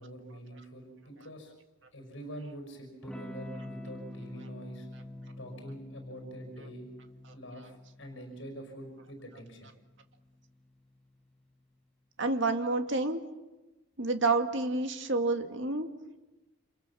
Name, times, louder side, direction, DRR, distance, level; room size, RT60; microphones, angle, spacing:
voice 1, 0.0-1.5 1.9-4.9 5.4-6.9 7.3-9.7, right 1 dB, 65° left, 5 dB, 5.7 m, -45 dB
Electric guitar / Strum, 3.0-11.3, left 1 dB, 5° left, 1.5 m, -47 dB
voice 2, 12.2-13.2 14.0-15.9, right 3 dB, 60° right, 6 dB, 2.2 m, -29 dB
29.0 x 27.0 x 7.1 m, 1.1 s
head